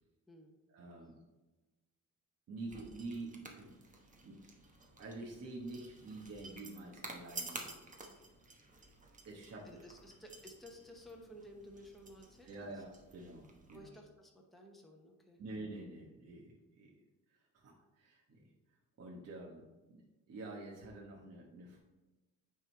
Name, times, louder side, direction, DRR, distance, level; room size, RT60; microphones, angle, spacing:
voice 1, 0.7-1.2 2.5-3.7 4.2-4.4 5.0-7.6 9.3-9.8 12.4-13.9 15.4-17.0 17.5-18.4 19.0-20.0 20.3-21.8, right 2 dB, 50° right, -2 dB, 1.2 m, -47 dB
sound 1, 2.7-13.8, right 3 dB, 25° right, 1.0 m, -52 dB
voice 2, 9.6-12.8 13.7-15.4, equal, ahead, 0 dB, 0.9 m, -55 dB
8.9 x 3.7 x 4.5 m, 1.1 s
cardioid pair, 140°, 33 cm